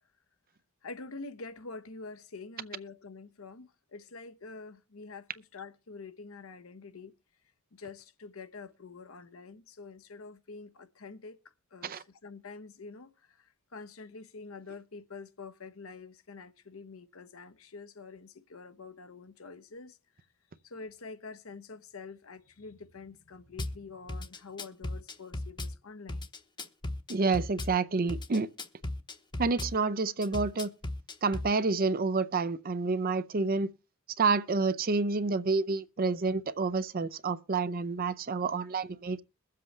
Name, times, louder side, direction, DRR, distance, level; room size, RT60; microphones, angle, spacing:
voice 1, 0.8-7.1 7.7-11.4 11.7-20.3 20.6-26.3, left 4 dB, 75° left, 0.9 m, -46 dB
Drum kit / Bass drum, 23.6-23.8 24.1-25.7 26.1-27.7 28.1-29.7 30.2-31.5, left 2 dB, 20° left, 0.9 m, -36 dB
voice 2, 27.1-28.5 29.4-30.7 31.2-33.7 34.2-39.2, right 4 dB, 45° right, 0.6 m, -29 dB
22.5 x 7.6 x 3.3 m
head